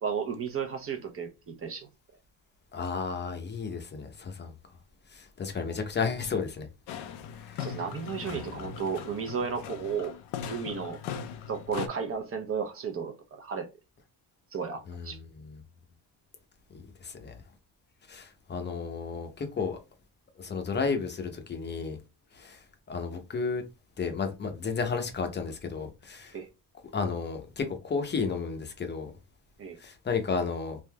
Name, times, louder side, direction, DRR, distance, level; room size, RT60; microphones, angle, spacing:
voice 1, 0.0-1.9 7.6-10.1 10.5-11.0 11.5-13.7 14.5-15.2 26.3-26.5 29.6-29.8, right 6 dB, 35° right, 0.7 m, -33 dB
voice 2, 2.7-4.5 5.1-6.7 7.4-7.8 8.3-8.4 14.9-15.6 16.7-17.4 18.1-19.8 20.4-22.0 22.3-23.6 24.0-26.4 26.9-29.1 29.8-30.8, left 5 dB, 25° left, 0.6 m, -33 dB
sound 1, 6.9-11.9, left 8 dB, 75° left, 0.6 m, -39 dB
3.4 x 2.6 x 2.2 m
cardioid pair, 125°, 41 cm